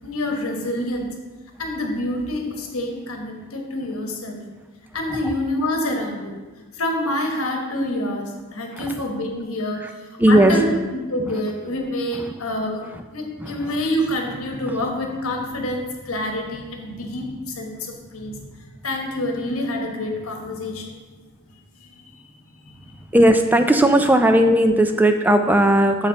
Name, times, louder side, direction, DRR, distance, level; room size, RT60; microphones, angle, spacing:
voice 1, 0.0-1.1 1.6-4.4 4.9-6.3 6.7-10.6 10.9-12.8 13.1-18.5 18.8-20.9 21.8-22.2 22.6-22.9, left 1 dB, 75° left, 2 dB, 1.2 m, -27 dB
voice 2, 10.2-10.6 12.9-13.0 13.4-13.8 23.1-26.1, right 1 dB, 10° right, 6 dB, 0.3 m, -17 dB
7.0 x 4.3 x 5.1 m, 1.3 s
head